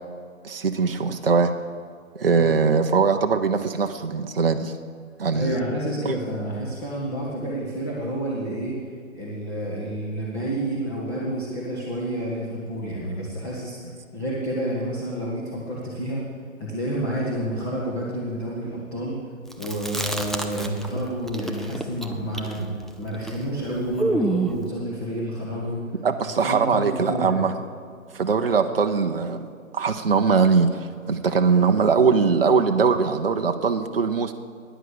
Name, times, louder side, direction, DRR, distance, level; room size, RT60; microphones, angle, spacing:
voice 1, 0.4-1.5 2.2-4.7 5.2-5.6 6.0-6.1 25.9-27.5 28.1-29.5 29.7-34.3, right 5 dB, 45° right, 6 dB, 0.8 m, -21 dB
voice 2, 5.3-8.8 9.1-13.8 14.1-16.2 16.6-19.2 19.6-25.8 26.4-27.4, right 1 dB, 20° left, -5 dB, 1.7 m, -29 dB
Chewing mastication, 19.5-21.0 21.3-24.6, right 2 dB, ahead, 0.3 m, -28 dB
14.5 x 10.0 x 6.9 m, 2.1 s
figure-of-eight pair, 155°, 41 cm